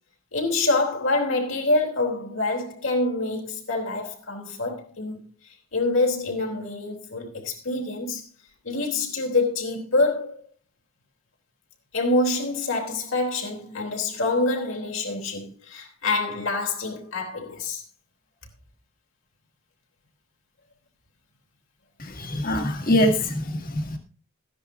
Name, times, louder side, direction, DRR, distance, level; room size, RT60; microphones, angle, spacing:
voice 1, 0.3-5.2 5.7-8.2 8.6-10.4 11.9-17.8, left 2 dB, 65° left, 3.4 m, -26 dB
voice 2, 22.2-24.0, left 1 dB, 40° left, 2.2 m, -23 dB
14.5 x 10.5 x 3.7 m
head